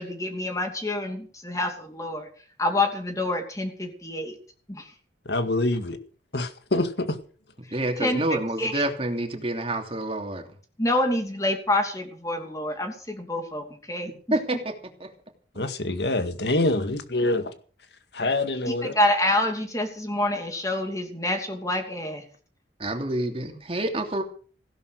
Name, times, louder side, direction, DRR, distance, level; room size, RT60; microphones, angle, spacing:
voice 1, 0.0-2.3 2.6-4.3 4.7-4.8 8.0-8.2 8.6-8.8 10.8-14.1 18.7-22.2, left 1 dB, 20° left, 2.7 m, -27 dB
voice 2, 5.3-6.0 6.3-7.2 15.6-17.5 18.1-18.9, left 2 dB, 65° left, 2.0 m, -25 dB
voice 3, 7.7-10.4 14.3-14.7 15.0-15.1 22.8-24.2, right 1 dB, 30° right, 2.9 m, -28 dB
16.5 x 11.0 x 6.5 m
head